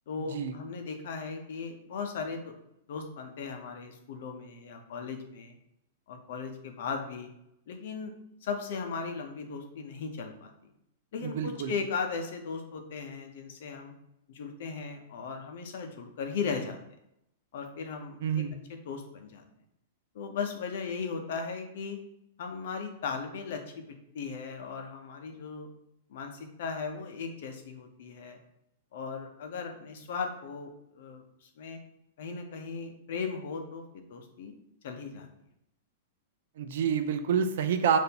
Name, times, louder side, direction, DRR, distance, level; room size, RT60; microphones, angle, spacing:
voice 1, 0.1-2.5 2.9-5.6 6.1-7.3 7.7-8.1 8.4-10.7 11.1-13.9 14.3-16.8 17.5-18.4 18.7-19.4 20.1-22.0 22.4-25.7 26.1-28.4 28.9-31.8 32.2-34.5 34.8-35.3, left 5 dB, 60° left, 4 dB, 0.7 m, -37 dB
voice 2, 11.2-11.7 18.2-18.6 36.6-38.0, right 7 dB, 65° right, 8 dB, 0.5 m, -28 dB
5.2 x 2.6 x 2.9 m, 0.81 s
supercardioid pair, 160°, 0 cm